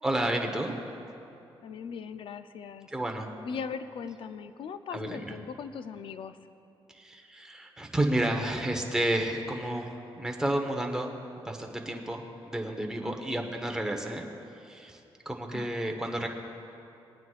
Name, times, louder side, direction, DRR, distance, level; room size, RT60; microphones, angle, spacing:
voice 1, 0.0-0.7 2.9-3.3 4.9-5.4 6.9-11.1 11.4-14.3 14.6-15.0 15.2-16.3, right 1 dB, 5° right, 1 dB, 1.1 m, -31 dB
voice 2, 1.6-2.9 3.4-6.4 13.0-13.6 15.5-15.7, left 6 dB, 65° left, 11 dB, 0.5 m, -39 dB
22.0 x 9.3 x 2.5 m, 2.8 s
cardioid pair, 95°, 10 cm